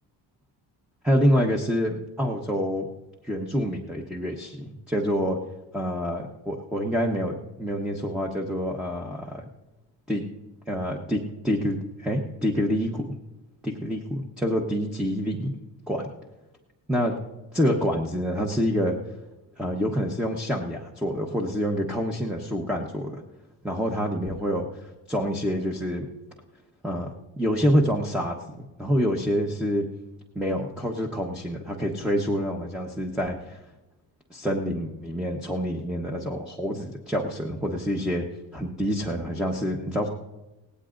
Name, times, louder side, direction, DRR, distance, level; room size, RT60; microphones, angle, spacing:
voice 1, 1.0-2.9 3.2-5.4 5.7-9.4 10.1-10.2 10.7-13.0 13.6-15.5 15.9-16.1 16.9-17.2 17.5-19.0 19.6-23.2 23.6-26.1 26.8-27.1 27.4-29.8 30.3-33.6 34.3-38.2 38.5-40.1, equal, ahead, 0 dB, 1.0 m, -27 dB
18.0 x 16.5 x 2.6 m, 1.0 s
cardioid pair, 120°, 44 cm